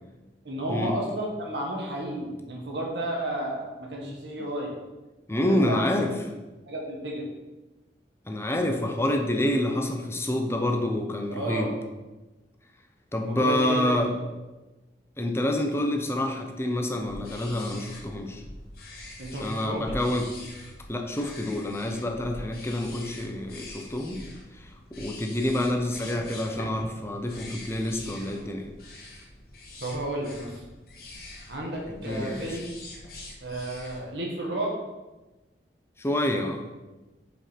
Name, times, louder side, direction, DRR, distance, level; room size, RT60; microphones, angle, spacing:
voice 1, 0.4-4.7 5.5-5.9 6.7-7.2 11.3-11.7 13.2-13.8 19.2-19.9 29.8-30.6 31.5-32.6 33.4-34.7, right 1 dB, 75° right, -2 dB, 1.6 m, -32 dB
voice 2, 5.3-6.1 8.3-11.7 13.1-14.1 15.2-18.4 19.4-20.3 20.9-24.2 24.6-28.7 31.9-32.6 36.0-36.6, left 1 dB, 15° left, 3 dB, 0.7 m, -27 dB
sound 1, 17.0-34.0, left 1 dB, 55° left, 1.5 m, -44 dB
5.2 x 4.8 x 5.8 m, 1.1 s
head